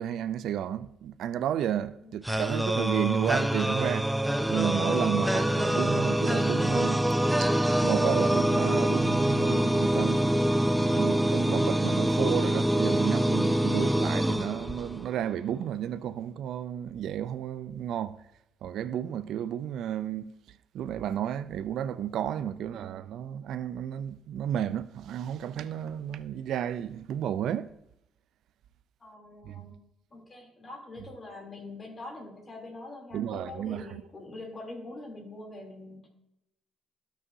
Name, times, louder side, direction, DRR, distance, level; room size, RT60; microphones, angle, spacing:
voice 1, 0.0-4.1 4.5-7.5 7.8-10.4 10.7-18.2 18.6-20.3 20.7-27.7 29.4-29.6 33.1-34.0, right 10 dB, 75° right, 0.4 m, -32 dB
voice 2, 2.0-2.4 22.6-22.9 29.0-29.7 30.1-36.1, left 2 dB, 35° left, 3.0 m, -44 dB
sound 1, 2.2-15.2, right 1 dB, 5° right, 0.5 m, -25 dB
13.5 x 6.2 x 2.7 m
cardioid pair, 85°, 0 cm